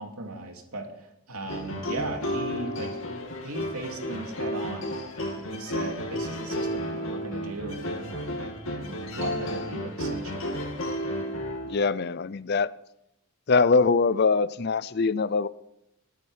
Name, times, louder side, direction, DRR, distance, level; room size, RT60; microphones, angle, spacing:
voice 1, 0.0-3.0 3.4-4.9 5.3-10.6, right 2 dB, 85° right, 2.8 m, -37 dB
sound 1, 1.5-11.9, equal, 65° left, 3.0 m, -32 dB
voice 2, 11.7-12.7 13.5-15.5, left 4 dB, 45° left, 0.5 m, -23 dB
20.5 x 9.5 x 5.0 m
head